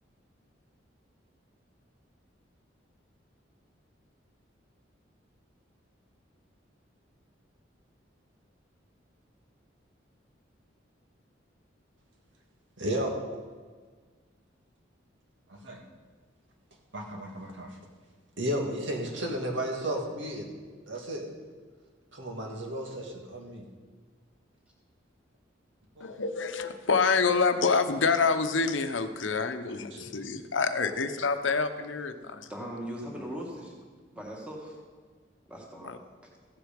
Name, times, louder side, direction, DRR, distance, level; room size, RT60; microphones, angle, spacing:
voice 1, 12.8-13.1 15.5-15.8 16.9-17.7 18.4-20.5 20.9-21.2 22.1-23.6 26.0-26.1 28.9-29.0 29.9-30.0, right 1 dB, 80° right, 1 dB, 2.0 m, -33 dB
voice 2, 26.0-32.5 35.9-36.0, left 4 dB, 85° left, 8 dB, 0.9 m, -27 dB
voice 3, 32.5-33.9 34.1-34.8 35.5-36.3, equal, 5° right, -2 dB, 1.9 m, -40 dB
15.5 x 7.9 x 5.2 m, 1.5 s
head